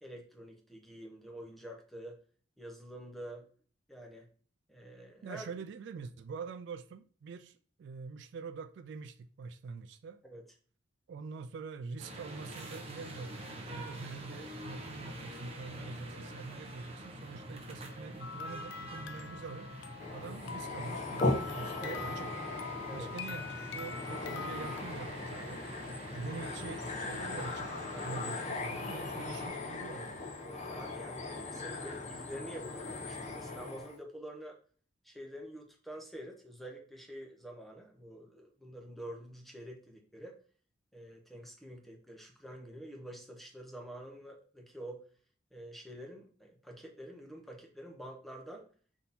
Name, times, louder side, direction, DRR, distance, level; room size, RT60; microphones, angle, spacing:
voice 1, 0.0-2.2 2.6-3.5 3.9-4.3 4.7-5.5 10.2-10.4 21.8-22.0 22.9-23.1 27.9-28.2 30.4-34.6 35.0-40.4 40.9-45.1 45.5-48.7, right 1 dB, ahead, 0.8 m, -47 dB
voice 2, 5.2-10.2 11.1-19.7 20.1-22.3 22.9-25.7 26.1-30.2, right 5 dB, 70° right, 0.3 m, -45 dB
sound 1, 12.0-29.5, right 1 dB, 35° right, 0.8 m, -46 dB
sound 2, 18.2-24.8, left 5 dB, 70° left, 0.4 m, -44 dB
sound 3, 20.0-34.0, left 2 dB, 40° left, 0.7 m, -39 dB
3.6 x 2.8 x 4.0 m
head